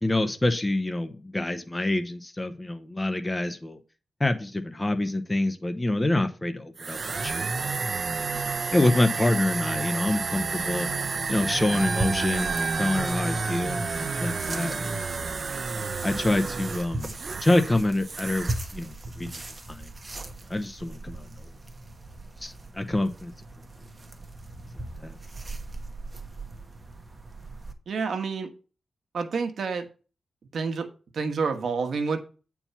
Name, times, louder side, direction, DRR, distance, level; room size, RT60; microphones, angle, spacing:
voice 1, 0.0-3.8 4.2-7.7 8.7-10.9 11.3-15.2 16.0-17.1 17.4-19.4 19.7-19.9 20.5-21.3 22.4-23.3 25.0-25.1, left 1 dB, 15° left, 0.9 m, -26 dB
sound 1, 6.8-17.8 18.0-18.6, right 4 dB, 45° right, 0.7 m, -30 dB
sound 2, 11.7-27.7, right 2 dB, 25° right, 1.3 m, -39 dB
voice 2, 27.9-28.5 29.1-29.9 30.5-30.9 31.1-32.2, right 5 dB, 75° right, 1.4 m, -28 dB
8.7 x 4.7 x 5.6 m
wide cardioid pair, 125°, 0 cm